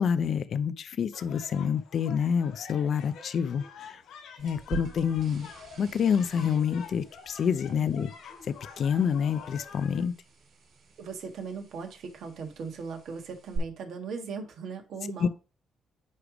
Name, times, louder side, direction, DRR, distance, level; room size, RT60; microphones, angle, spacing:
voice 1, 0.0-4.0 4.4-5.5 5.8-8.1 8.8-10.1 15.2-15.3, left 7 dB, 60° left, 0.5 m, -27 dB
sound 1, 1.1-10.0, left 6 dB, 85° left, 3.0 m, -48 dB
sound 2, 4.4-13.6, right 8 dB, 50° right, 4.7 m, -46 dB
voice 2, 7.7-8.1 11.0-15.3, right 5 dB, 70° right, 1.8 m, -38 dB
9.8 x 3.3 x 5.0 m
cardioid pair, 90°, 0 cm